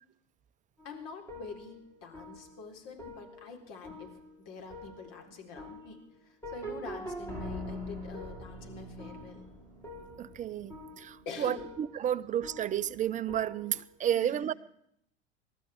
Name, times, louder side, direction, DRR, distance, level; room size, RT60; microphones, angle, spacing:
voice 1, 0.8-4.1 4.4-9.4 11.3-11.7 14.1-14.4, left 4 dB, 45° left, 4.2 m, -46 dB
sound 1, 0.8-14.0, left 1 dB, 10° left, 4.9 m, -45 dB
voice 2, 10.2-14.5, right 10 dB, 20° right, 0.6 m, -32 dB
28.0 x 13.5 x 3.6 m
figure-of-eight pair, 80°, 35 cm